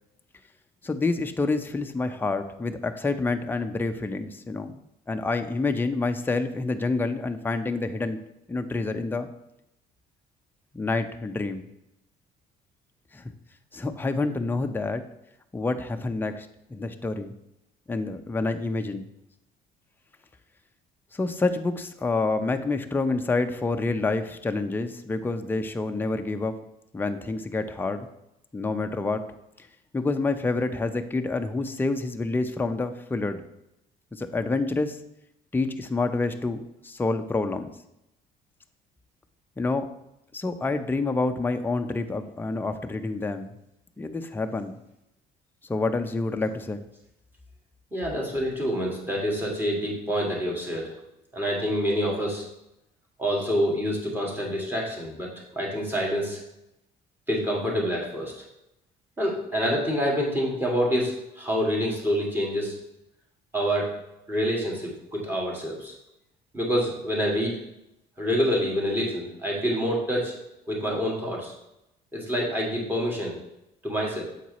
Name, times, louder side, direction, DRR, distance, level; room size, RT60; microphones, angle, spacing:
voice 1, 0.8-4.7 5.1-8.2 8.5-9.3 10.7-11.6 13.1-13.2 13.7-15.0 15.5-17.3 17.9-19.1 21.1-26.6 26.9-28.1 28.5-29.3 29.6-29.7 29.9-33.4 34.1-35.0 35.5-37.7 39.6-39.9 40.3-43.5 44.0-44.8 45.7-46.8, left 3 dB, 10° left, 6 dB, 0.5 m, -28 dB
voice 2, 47.9-50.9 51.3-52.5 53.2-56.4 57.3-58.3 59.2-62.8 63.5-64.0 64.3-65.9 66.5-67.6 68.2-70.3 70.7-71.5 72.1-73.4 73.8-74.2, equal, 10° right, -2 dB, 2.2 m, -27 dB
7.4 x 4.5 x 4.1 m, 0.86 s
cardioid pair, 110°, 17 cm